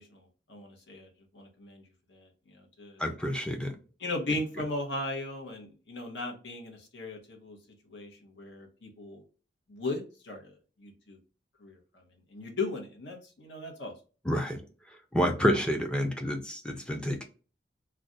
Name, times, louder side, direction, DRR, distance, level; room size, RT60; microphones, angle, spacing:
voice 1, 0.0-1.8 2.1-3.0 4.0-7.6 7.9-9.2 9.7-10.5 10.8-11.2 11.6-12.0 12.3-13.9, left 2 dB, 80° left, 3 dB, 0.9 m, -37 dB
voice 2, 3.0-3.8 14.2-14.6 15.1-17.2, equal, 5° left, 4 dB, 0.4 m, -28 dB
2.4 x 2.2 x 3.8 m, 0.36 s
head